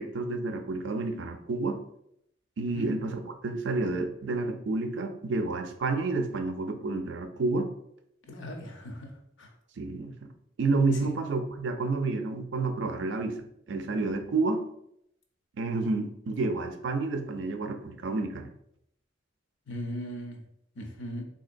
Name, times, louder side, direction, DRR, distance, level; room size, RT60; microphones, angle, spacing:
voice 1, 0.0-1.8 2.6-7.7 9.8-10.3 10.6-14.7 15.6-18.5, right 3 dB, 65° right, 6 dB, 0.4 m, -30 dB
voice 2, 8.3-9.1 9.4-9.5 11.0-11.1 19.7-20.4 20.8-21.2, equal, 70° left, 3 dB, 0.6 m, -38 dB
3.8 x 2.7 x 2.5 m, 0.75 s
head